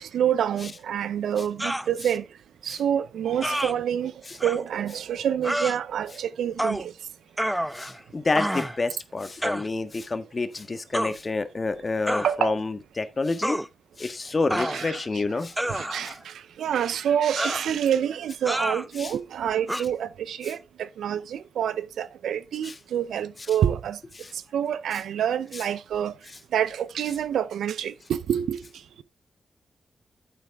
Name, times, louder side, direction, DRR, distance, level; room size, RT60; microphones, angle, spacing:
voice 1, 0.0-2.3 2.6-4.1 4.4-6.9 12.0-12.5 14.6-15.2 15.7-24.0 24.3-26.2 26.5-28.6, right 9 dB, 90° right, 0.6 m, -27 dB
sound 1, 1.6-1.9 3.4-3.7 4.4-4.6 5.4-5.8 6.6-6.9 7.4-8.0 8.3-8.8 9.4-9.7 10.9-11.1 12.1-12.3 13.4-13.7 14.5-15.0 15.6-16.2 17.4-17.7 18.5-18.9 19.7-19.8, equal, 5° right, 0.7 m, -28 dB
voice 2, 7.7-13.6 14.0-15.5 16.0-16.1 19.0-19.1 20.4-20.5 22.6-22.7 24.2-24.3 25.5-25.6, left 3 dB, 45° left, 1.5 m, -29 dB
8.8 x 8.2 x 3.5 m
supercardioid pair, 45°, 0 cm